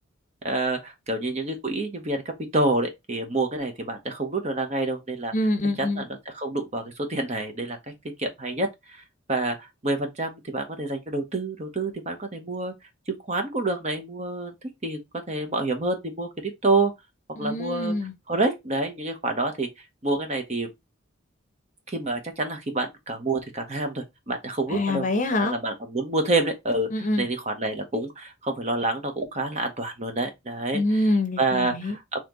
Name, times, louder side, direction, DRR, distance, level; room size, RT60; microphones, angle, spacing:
voice 1, 0.4-5.3 5.8-6.1 6.3-7.9 8.2-9.0 9.3-12.7 13.1-14.5 14.8-15.0 15.3-16.9 17.4-17.9 18.3-19.7 20.0-20.7 21.9-25.1 25.4-30.8 31.4-32.2, right 2 dB, 35° right, 1.0 m, -28 dB
voice 2, 5.3-6.0 17.4-18.1 24.7-25.6 26.9-27.3 30.7-32.0, left 1 dB, 40° left, 0.8 m, -25 dB
4.2 x 3.0 x 3.8 m
head